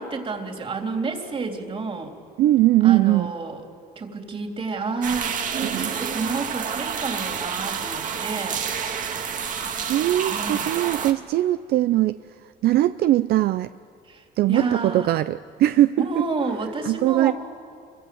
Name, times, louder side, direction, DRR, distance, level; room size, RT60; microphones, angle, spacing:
voice 1, 0.0-2.1 2.8-3.6 4.0-9.0 10.1-10.7 14.1-15.1 16.0-17.3, right 4 dB, 35° right, 3 dB, 3.5 m, -30 dB
voice 2, 2.4-3.3 5.6-5.9 9.9-13.7 14.4-16.2 16.8-17.3, right 14 dB, 70° right, 12 dB, 0.6 m, -21 dB
sound 1, 5.0-11.1, right 7 dB, 50° right, 1.9 m, -29 dB
27.5 x 23.5 x 7.9 m, 2.2 s
cardioid pair, 110°, 17 cm